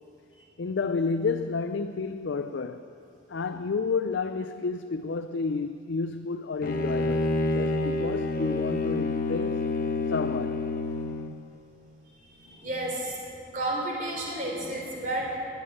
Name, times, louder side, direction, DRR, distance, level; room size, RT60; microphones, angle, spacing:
voice 1, 0.6-2.9 3.3-9.7 10.1-10.7, left 4 dB, 65° left, 8 dB, 0.4 m, -30 dB
Bowed string instrument, 6.6-11.4, left 2 dB, 45° left, 0.8 m, -28 dB
voice 2, 12.4-13.2 13.5-15.4, right 1 dB, 45° right, -2 dB, 3.5 m, -31 dB
13.5 x 9.0 x 9.8 m, 2.6 s
head